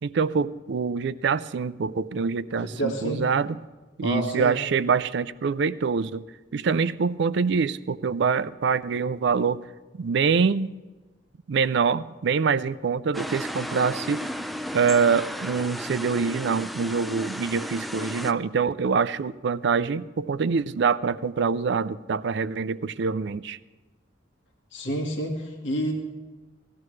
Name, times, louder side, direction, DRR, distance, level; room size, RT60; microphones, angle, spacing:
voice 1, 0.0-3.6 4.0-6.2 6.5-9.6 10.0-10.7 11.5-14.2 14.7-23.6, right 5 dB, 65° right, 17 dB, 0.4 m, -25 dB
voice 2, 2.6-3.2 4.0-4.5 24.7-25.9, right 1 dB, 90° left, 1 dB, 1.7 m, -29 dB
sound 1, 13.1-18.3, equal, ahead, 0.4 m, -34 dB
18.0 x 14.0 x 3.2 m, 1.2 s
head